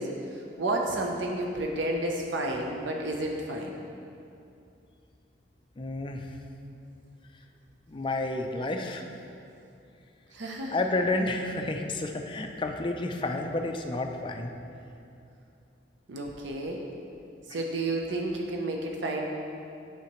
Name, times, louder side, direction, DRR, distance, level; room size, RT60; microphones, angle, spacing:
voice 1, 0.0-3.8 10.3-10.8 16.1-16.8 17.5-19.3, right 1 dB, 80° right, 0 dB, 0.6 m, -31 dB
voice 2, 5.8-6.4 7.9-9.0 10.7-14.5, left 2 dB, 25° left, 4 dB, 0.4 m, -30 dB
8.5 x 5.7 x 3.0 m, 2.7 s
head